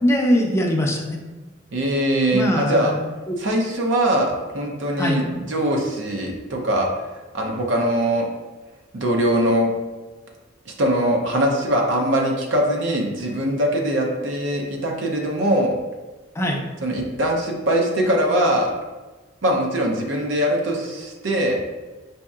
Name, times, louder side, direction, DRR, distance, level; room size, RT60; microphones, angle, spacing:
voice 1, 0.0-1.2 2.3-3.0 3.3-3.4 5.0-5.2 16.4-16.6, equal, 15° left, 0 dB, 0.5 m, -21 dB
voice 2, 1.7-3.0 3.4-6.9 7.3-8.3 8.9-9.7 10.7-15.7 16.8-18.7 19.4-21.6, right 1 dB, 70° right, 0 dB, 0.6 m, -22 dB
5.2 x 2.8 x 2.4 m, 1.2 s
head